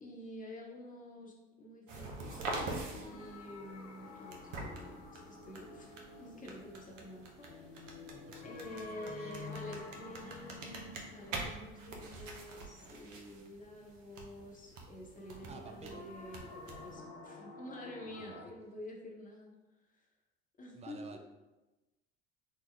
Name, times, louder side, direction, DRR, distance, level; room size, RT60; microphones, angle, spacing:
voice 1, 0.0-7.7 8.4-16.5 16.8-19.5 20.6-21.2, left 1 dB, 20° left, -1 dB, 0.9 m, -49 dB
sound 1, 1.9-16.9, right 2 dB, 80° right, 0.7 m, -46 dB
sound 2, 2.2-13.1 15.2-18.5, left 4 dB, 75° left, 0.6 m, -51 dB
voice 2, 8.1-9.3 15.5-16.1 18.1-18.5 20.7-21.2, right 4 dB, 20° right, 5 dB, 0.4 m, -52 dB
3.8 x 2.2 x 3.3 m, 1.1 s
hypercardioid pair, 70°, 38 cm